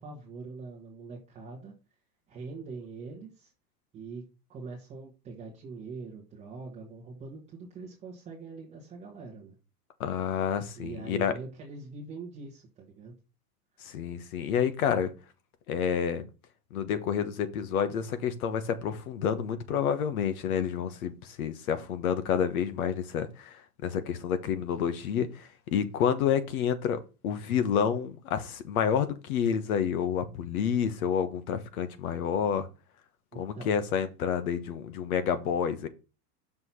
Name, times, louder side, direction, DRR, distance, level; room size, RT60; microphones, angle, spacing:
voice 1, 0.0-1.7 2.3-3.5 3.9-4.2 4.5-9.5 10.7-13.1 33.3-33.7, right 4 dB, 15° right, 1.1 m, -43 dB
voice 2, 10.0-11.3 13.8-15.1 15.7-16.2 16.7-32.7 33.3-35.9, left 8 dB, 60° left, 1.3 m, -29 dB
6.1 x 4.8 x 5.6 m
supercardioid pair, 170°, 48 cm